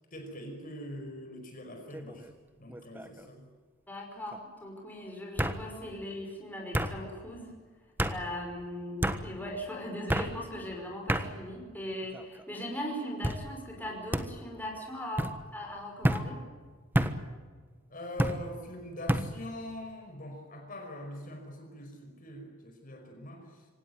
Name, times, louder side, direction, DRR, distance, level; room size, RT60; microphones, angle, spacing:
voice 1, 0.1-2.3 2.6-3.5 17.9-23.7, left 1 dB, 40° left, 4 dB, 5.2 m, -43 dB
sound 1, 1.9-2.3 2.7-3.2 4.3-4.4 5.4-5.6 6.7-6.9 8.0-8.2 9.0-9.2 10.1-10.3 11.1-11.3 12.0-12.4 13.2-13.4 14.1-14.3 15.2-15.3 16.0-16.3 16.9-17.2 18.2-18.4 19.1-19.3, right 1 dB, 10° right, 1.3 m, -29 dB
voice 2, 3.9-7.5 8.1-15.3 15.5-16.4, left 1 dB, 10° left, 0 dB, 5.5 m, -39 dB
25.5 x 18.0 x 9.4 m, 1.5 s
head